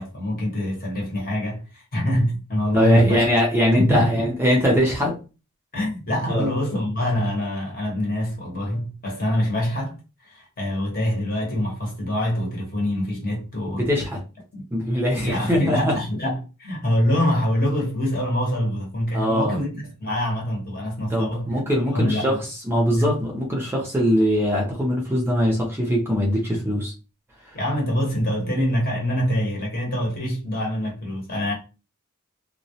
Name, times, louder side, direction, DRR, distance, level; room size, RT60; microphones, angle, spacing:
voice 1, 0.0-3.3 3.7-4.3 5.7-10.0 10.2-13.8 14.5-14.6 15.2-21.5 21.9-22.4 23.0-23.1 26.5-26.6 27.5-31.5, equal, 45° left, 0.9 m, -25 dB
voice 2, 2.7-5.1 6.3-6.5 13.7-14.2 14.7-15.9 19.1-19.6 21.1-22.4 22.6-26.9, equal, 10° right, 0.5 m, -21 dB
2.2 x 2.0 x 2.7 m
head